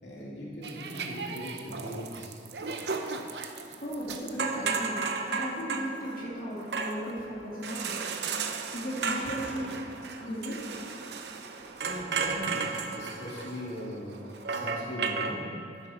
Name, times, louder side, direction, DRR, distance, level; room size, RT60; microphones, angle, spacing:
voice 1, 0.0-2.3 11.5-15.5, equal, 80° left, -6 dB, 2.7 m, -39 dB
sound 1, 0.6-15.3, right 5 dB, 70° right, 0.7 m, -34 dB
voice 2, 3.5-11.8, equal, 50° left, -7 dB, 2.4 m, -37 dB
11.5 x 10.5 x 4.3 m, 2.8 s
head